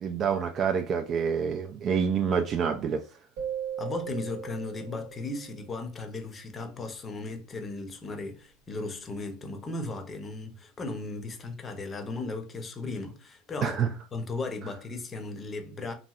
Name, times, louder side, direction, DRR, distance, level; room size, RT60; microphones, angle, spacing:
voice 1, 0.0-3.0 13.6-13.9, right 7 dB, 40° right, 0.3 m, -27 dB
sound 1, 3.4-5.6, right 9 dB, 65° right, 0.7 m, -37 dB
voice 2, 3.8-13.8 14.1-15.9, left 3 dB, 30° left, 0.7 m, -36 dB
2.9 x 2.6 x 2.3 m
hypercardioid pair, 85°, 0 cm